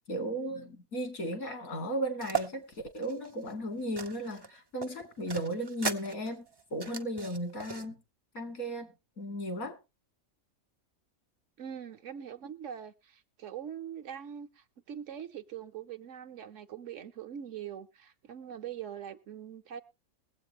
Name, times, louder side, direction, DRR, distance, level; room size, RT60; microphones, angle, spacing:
voice 1, 0.1-6.4 6.7-8.0 8.3-9.8, right 1 dB, 80° left, 2.8 m, -35 dB
sound 1, 2.2-2.5 3.0-4.5 4.8-7.9, right 5 dB, 30° right, 0.4 m, -37 dB
voice 2, 11.6-19.8, right 9 dB, 65° right, 1.1 m, -43 dB
21.5 x 8.0 x 3.1 m
omnidirectional pair, 1.5 m